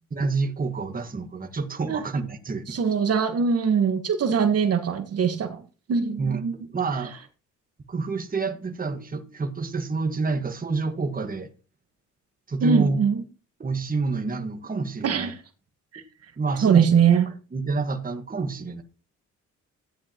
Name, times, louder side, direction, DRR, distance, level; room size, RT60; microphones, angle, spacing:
voice 1, 0.1-2.8 6.2-7.1 7.9-11.5 12.5-13.0 13.6-15.3 15.9-16.0 16.4-16.9 17.5-18.8, right 4 dB, 30° right, 1.6 m, -28 dB
voice 2, 2.7-5.6 5.9-6.5 12.6-13.2 15.0-15.4 15.9-16.0 16.6-17.3, right 6 dB, 55° right, 1.4 m, -22 dB
14.0 x 9.8 x 3.0 m
cardioid pair, 90°, 30 cm